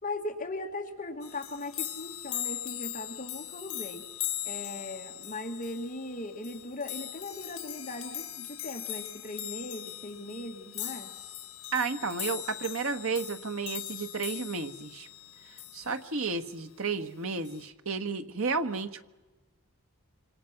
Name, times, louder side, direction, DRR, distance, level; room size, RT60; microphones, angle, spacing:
voice 1, 0.0-4.0 4.4-11.1, left 2 dB, 35° left, 3 dB, 1.9 m, -39 dB
sound 1, 1.2-16.2 17.5-17.7, left 14 dB, 70° left, 2.0 m, -40 dB
voice 2, 11.7-15.1 15.7-19.0, right 4 dB, 65° right, 7 dB, 1.4 m, -32 dB
26.5 x 25.5 x 6.0 m, 1.1 s
head